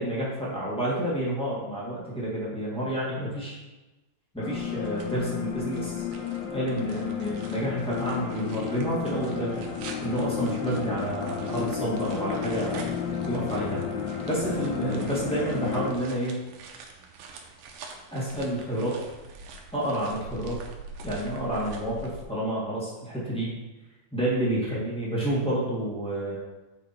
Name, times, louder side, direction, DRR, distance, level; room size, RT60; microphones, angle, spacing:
voice 1, 0.0-3.6 4.3-6.0 6.5-9.6 10.0-12.9 13.2-13.8 14.2-16.4 18.1-19.0 19.7-20.6 21.0-23.5 24.1-26.4, right 1 dB, 5° left, -7 dB, 1.0 m, -29 dB
sound 1, 4.4-16.0, left 7 dB, 75° left, 2.3 m, -32 dB
sound 2, 4.4-22.2, right 3 dB, 75° right, 2.1 m, -46 dB
8.1 x 4.8 x 4.4 m, 1.1 s
omnidirectional pair, 4.2 m